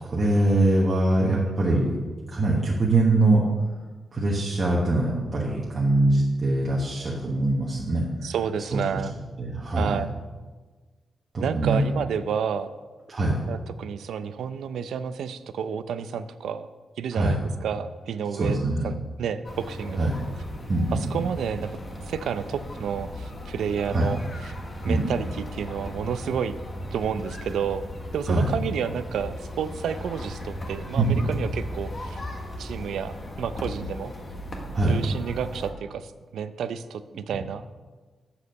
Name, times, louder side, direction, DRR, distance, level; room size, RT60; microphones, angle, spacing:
voice 1, 0.1-1.9 2.3-3.4 4.1-8.0 8.7-8.8 9.4-10.0 11.3-11.8 13.1-13.3 17.1-17.4 18.4-18.9 20.0-20.1 20.7-21.0 23.9-24.1 24.9-25.1 28.3-28.5 31.0-31.3 34.7-35.0, right 2 dB, 30° right, -4 dB, 1.2 m, -23 dB
voice 2, 1.2-1.6 8.2-9.1 9.8-10.1 11.4-12.7 13.5-16.7 17.0-20.1 20.9-21.8 22.1-24.5 24.8-26.6 26.9-27.8 28.1-32.2 32.6-34.1 34.9-37.6, right 7 dB, 90° right, 12 dB, 0.5 m, -30 dB
sound 1, 19.4-35.7, left 1 dB, 30° left, 1.2 m, -37 dB
7.3 x 6.8 x 6.4 m, 1.3 s
wide cardioid pair, 150°, 0 cm